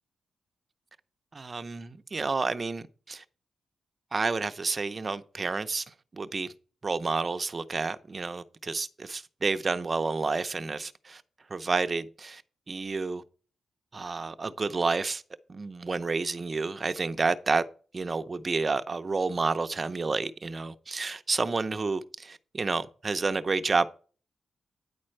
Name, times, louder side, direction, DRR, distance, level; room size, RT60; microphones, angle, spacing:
voice 1, 1.3-3.2 4.1-6.5 6.8-11.2 11.5-12.4 12.7-13.2 13.9-15.2 15.5-17.6 17.9-23.9, right 4 dB, 35° right, 0.6 m, -30 dB
9.6 x 4.3 x 6.5 m
cardioid pair, 95°, 0 cm